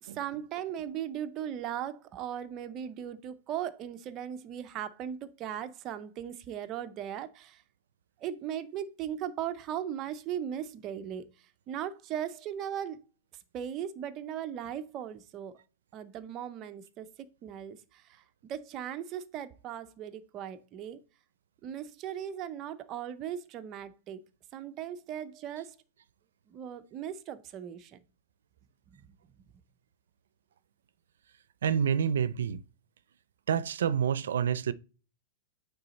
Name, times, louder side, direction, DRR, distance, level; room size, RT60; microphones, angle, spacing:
voice 1, 0.0-7.6 8.2-11.2 11.7-13.0 13.5-15.5 15.9-17.1 17.4-21.0 21.6-24.2 24.5-25.8 26.5-28.0 28.9-29.0, right 10 dB, 20° right, 0.6 m, -38 dB
voice 2, 31.6-32.6 33.5-34.7, right 8 dB, 85° right, 0.5 m, -28 dB
8.7 x 3.8 x 4.1 m
supercardioid pair, 170°, 0 cm